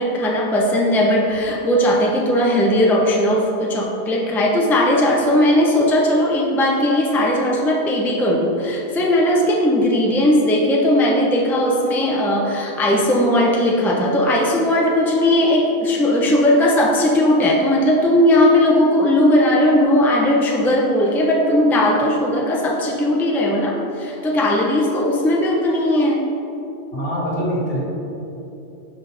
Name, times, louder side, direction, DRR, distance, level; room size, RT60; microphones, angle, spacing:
voice 1, 0.0-26.3, left 1 dB, ahead, -2 dB, 0.6 m, -17 dB
voice 2, 26.9-27.8, equal, 65° left, -6 dB, 2.1 m, -23 dB
12.0 x 4.1 x 3.4 m, 2.9 s
omnidirectional pair, 1.1 m